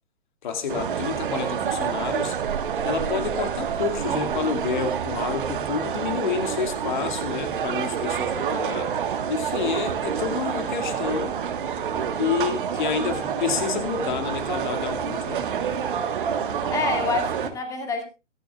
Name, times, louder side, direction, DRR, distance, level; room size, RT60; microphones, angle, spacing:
voice 1, 0.4-2.4 2.8-9.0 9.3-11.4 12.2-15.4, left 6 dB, 40° left, 2.3 m, -29 dB
sound 1, 0.7-17.5, right 8 dB, 45° right, 1.5 m, -28 dB
voice 2, 8.0-8.4 11.9-12.2 15.8-16.1 16.7-18.0, left 3 dB, 10° left, 2.2 m, -29 dB
23.0 x 10.5 x 2.4 m
figure-of-eight pair, 130°, 37 cm